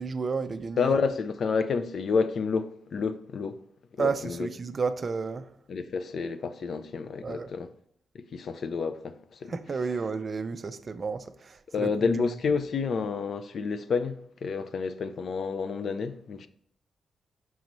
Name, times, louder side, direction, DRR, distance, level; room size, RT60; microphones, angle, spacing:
voice 1, 0.0-1.0 4.0-5.5 7.2-7.5 9.5-12.6, right 4 dB, 35° right, 0.4 m, -32 dB
voice 2, 0.8-3.6 3.9-4.5 5.7-7.7 8.1-9.6 11.7-16.5, left 5 dB, 50° left, 0.4 m, -29 dB
6.1 x 3.0 x 5.2 m
wide cardioid pair, 160°, 0 cm